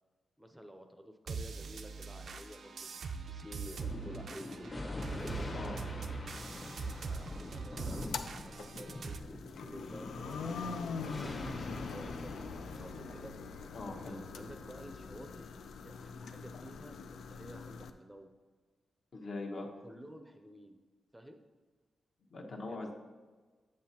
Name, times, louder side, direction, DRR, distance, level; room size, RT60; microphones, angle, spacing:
voice 1, 0.4-5.3 7.0-13.3 14.3-15.5 15.7-18.3 19.6-20.8 21.1-21.4 22.7-22.9, equal, 10° right, 5 dB, 0.5 m, -52 dB
sound 1, 1.3-9.2, right 5 dB, 65° right, 0.4 m, -42 dB
Thunder, 3.7-14.6, left 2 dB, 35° left, 1.0 m, -44 dB
sound 2, 8.0-17.9, left 5 dB, 85° left, 0.4 m, -43 dB
voice 2, 13.7-14.2 19.1-19.7 22.3-22.9, left 2 dB, 60° left, 1 dB, 1.1 m, -41 dB
7.7 x 7.3 x 2.9 m, 1.4 s
cardioid pair, 80°, 0 cm